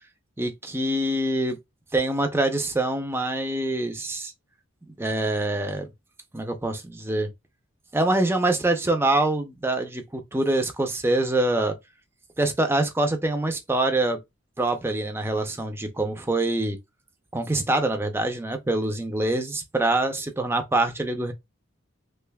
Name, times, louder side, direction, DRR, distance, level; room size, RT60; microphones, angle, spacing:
voice 1, 0.4-1.6 1.9-4.3 4.9-5.9 6.3-7.3 7.9-11.8 12.4-14.2 14.6-16.8 17.3-21.3, right 2 dB, 10° right, 0.5 m, -25 dB
3.3 x 3.0 x 2.2 m
head